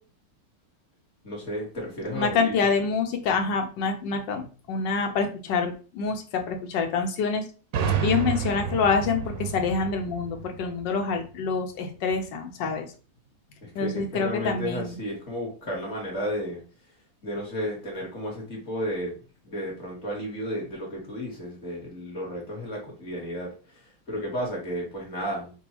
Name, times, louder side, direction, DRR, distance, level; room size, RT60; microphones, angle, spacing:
voice 1, 1.2-2.8 13.6-16.6 17.2-19.2 19.4-25.5, equal, 40° left, -2 dB, 1.7 m, -33 dB
voice 2, 2.1-7.4 8.0-12.9 13.7-15.0, left 5 dB, 80° left, 5 dB, 1.4 m, -26 dB
sound 1, 7.7-11.4, right 7 dB, 70° right, 0.8 m, -30 dB
5.1 x 2.3 x 2.9 m, 0.36 s
omnidirectional pair, 1.9 m